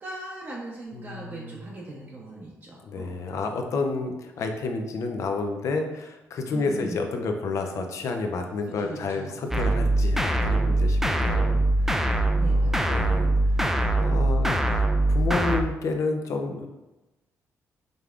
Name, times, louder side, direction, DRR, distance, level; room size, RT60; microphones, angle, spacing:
voice 1, 0.0-3.1 6.5-7.0 8.8-9.4 12.3-13.1 13.4-13.7, right 1 dB, 40° right, -4 dB, 0.8 m, -39 dB
voice 2, 0.9-1.6 2.8-11.9 12.5-13.6 14.0-16.7, left 3 dB, 65° left, 4 dB, 0.6 m, -30 dB
sound 1, 9.5-15.6, right 1 dB, 5° right, 0.3 m, -22 dB
5.2 x 3.3 x 2.4 m, 1.0 s
cardioid pair, 90°, 6 cm